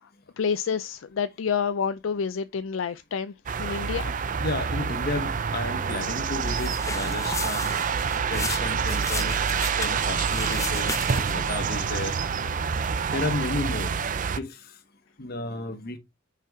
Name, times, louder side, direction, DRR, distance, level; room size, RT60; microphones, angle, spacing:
voice 1, 0.4-4.1, left 6 dB, 75° left, 0.4 m, -28 dB
sound 1, 3.5-14.4, right 6 dB, 40° right, 0.5 m, -27 dB
voice 2, 4.4-7.7 8.3-9.4 9.8-12.2 13.1-13.9 14.4-14.8 15.2-16.0, left 2 dB, 50° left, 1.1 m, -32 dB
sound 2, 6.4-11.5, left 4 dB, 15° left, 0.7 m, -35 dB
5.8 x 4.5 x 4.6 m
head